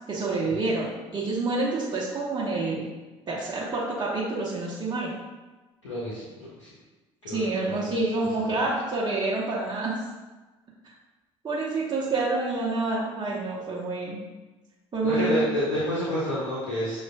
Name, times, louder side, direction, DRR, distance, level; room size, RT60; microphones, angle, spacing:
voice 1, 0.1-2.8 3.3-5.1 7.3-10.0 11.4-14.2 14.9-15.5, right 3 dB, 30° right, -5 dB, 0.8 m, -28 dB
voice 2, 5.8-6.2 6.6-6.7 7.2-7.8 15.0-17.0, equal, 80° left, -8 dB, 0.7 m, -28 dB
6.1 x 2.3 x 2.3 m, 1.2 s
hypercardioid pair, 55°, 16 cm